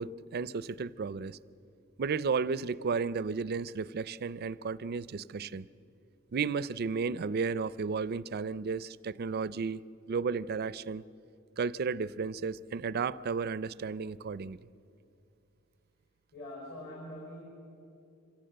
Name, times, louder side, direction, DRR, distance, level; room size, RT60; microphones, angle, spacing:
voice 1, 0.0-1.4 2.0-5.7 6.3-9.8 10.1-11.0 11.6-14.6, right 5 dB, 50° right, 18 dB, 0.4 m, -33 dB
voice 2, 16.3-17.4, left 1 dB, 55° left, -4 dB, 5.3 m, -43 dB
25.5 x 17.0 x 7.8 m, 2.6 s
head